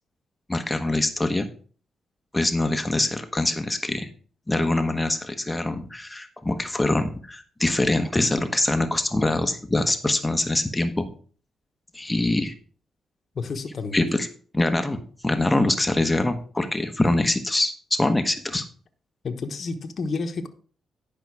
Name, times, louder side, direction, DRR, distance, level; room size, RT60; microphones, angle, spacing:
voice 1, 0.5-1.5 2.3-4.1 4.5-11.1 11.9-12.5 13.9-14.3 14.5-18.6, left 2 dB, 15° left, 7 dB, 1.1 m, -24 dB
voice 2, 13.3-14.0 19.2-20.5, left 4 dB, 55° left, 5 dB, 1.1 m, -30 dB
10.5 x 5.5 x 4.7 m, 0.43 s
cardioid pair, 75°, 0 cm